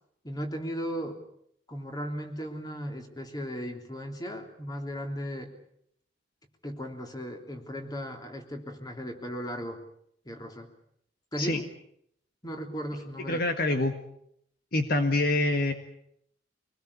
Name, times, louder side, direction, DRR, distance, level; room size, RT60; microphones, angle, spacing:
voice 1, 0.2-1.2 1.7-5.5 6.6-9.8 10.2-10.7 11.3-11.6 12.4-13.4, equal, 20° left, 4 dB, 3.3 m, -36 dB
voice 2, 13.3-13.9 14.7-15.7, left 2 dB, 55° left, 6 dB, 1.8 m, -25 dB
25.0 x 19.5 x 8.4 m, 0.71 s
head